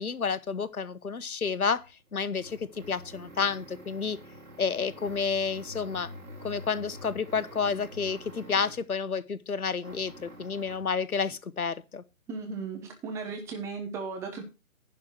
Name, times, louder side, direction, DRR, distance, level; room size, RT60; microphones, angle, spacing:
voice 1, 0.0-1.9 2.1-4.2 4.6-6.1 6.4-12.0, left 5 dB, 85° left, 1.1 m, -30 dB
sound 1, 1.7-8.9 9.8-10.9, equal, 85° right, 3.3 m, -47 dB
voice 2, 12.3-14.4, right 4 dB, 5° right, 0.9 m, -36 dB
11.0 x 4.4 x 7.7 m
figure-of-eight pair, 145°, 42 cm